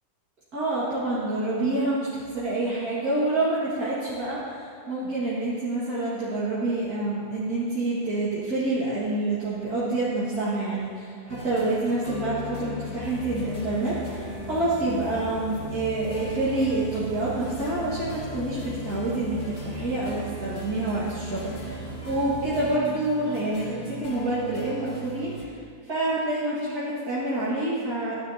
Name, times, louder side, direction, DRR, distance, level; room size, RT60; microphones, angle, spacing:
voice 1, 0.5-28.1, right 2 dB, 70° right, -11 dB, 2.5 m, -27 dB
sound 1, 11.3-25.4, left 2 dB, 80° left, 2.0 m, -38 dB
sound 2, 13.0-22.8, right 5 dB, 85° right, 0.3 m, -41 dB
15.5 x 10.5 x 2.9 m, 2.5 s
omnidirectional pair, 1.7 m